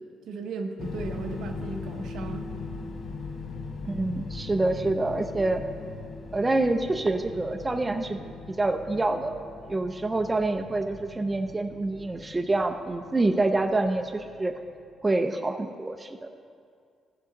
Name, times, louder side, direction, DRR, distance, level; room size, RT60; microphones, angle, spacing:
voice 1, 0.0-2.5, right 4 dB, 80° right, 4 dB, 0.8 m, -36 dB
sound 1, 0.8-14.8, left 4 dB, 55° left, 0.8 m, -40 dB
voice 2, 3.8-5.6 6.3-9.4 9.7-14.6 15.0-16.3, right 2 dB, 20° right, 6 dB, 0.6 m, -27 dB
14.0 x 6.3 x 3.9 m, 2.2 s
cardioid pair, 90°, 0 cm